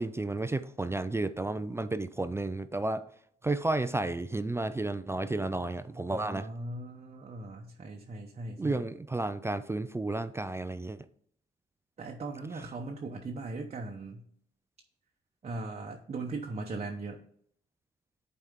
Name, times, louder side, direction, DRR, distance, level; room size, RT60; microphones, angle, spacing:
voice 1, 0.0-3.0 3.4-6.5 8.6-11.0, right 2 dB, 15° right, 0.3 m, -32 dB
voice 2, 6.1-8.8 12.0-14.2 15.4-17.2, right 3 dB, 35° right, 0.8 m, -39 dB
10.5 x 4.3 x 3.6 m
cardioid pair, 90°, 20 cm